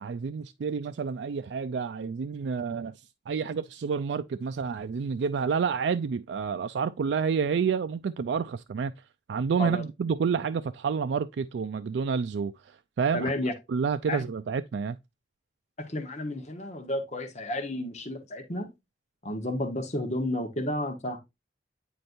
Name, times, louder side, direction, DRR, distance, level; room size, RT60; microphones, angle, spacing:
voice 1, 0.0-2.9 3.3-8.9 9.3-13.3 13.7-15.0, right 6 dB, 80° right, 0.4 m, -29 dB
voice 2, 13.1-13.5 14.1-14.2 15.9-18.7 19.2-21.2, left 1 dB, 40° left, 1.2 m, -31 dB
9.2 x 4.3 x 2.6 m
head